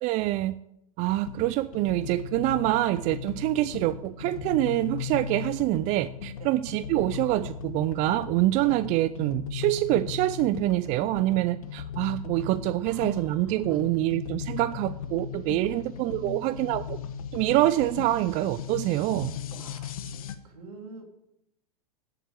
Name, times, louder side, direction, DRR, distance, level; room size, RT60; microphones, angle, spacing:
voice 1, 0.0-0.6 1.0-17.0 17.3-19.4, right 16 dB, 40° right, 15 dB, 0.5 m, -26 dB
sound 1, 1.1-20.3, left 8 dB, 70° left, 1.2 m, -38 dB
voice 2, 12.9-13.9 15.6-15.9 16.2-16.7 18.9-19.0 19.5-21.0, right 3 dB, 75° right, 3 dB, 3.2 m, -47 dB
10.0 x 7.8 x 8.9 m, 0.81 s
hypercardioid pair, 110°, 19 cm